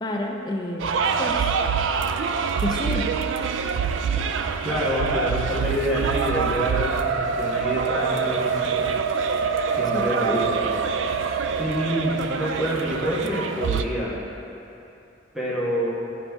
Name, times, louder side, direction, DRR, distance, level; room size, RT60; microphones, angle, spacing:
voice 1, 0.0-1.5 2.6-3.3 9.9-10.2, left 1 dB, 20° left, 1 dB, 0.5 m, -30 dB
sound 1, 0.8-13.8, right 6 dB, 75° right, 0.3 m, -25 dB
voice 2, 4.6-8.9 9.7-10.7 11.6-14.1 15.3-15.9, equal, ahead, -7 dB, 1.2 m, -27 dB
10.5 x 4.0 x 3.5 m, 2.8 s
head